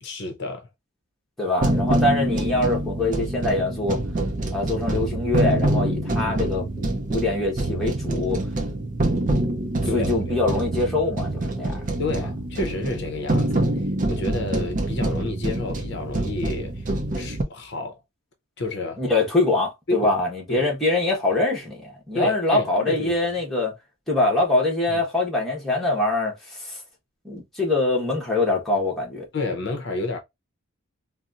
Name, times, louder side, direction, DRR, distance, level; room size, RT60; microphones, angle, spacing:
voice 1, 0.0-0.7 9.9-10.4 12.0-13.8 14.1-16.8 17.1-18.0 18.6-19.0 19.9-20.1 20.5-20.7 22.1-23.2 24.9-25.0 29.3-30.2, left 2 dB, 50° left, 0.6 m, -30 dB
voice 2, 1.4-4.0 4.5-8.4 9.8-11.7 19.0-23.7 24.1-26.8 27.2-29.3, left 2 dB, ahead, 1.0 m, -24 dB
sound 1, 1.6-17.4, right 1 dB, 35° right, 0.5 m, -25 dB
4.0 x 2.0 x 2.4 m
head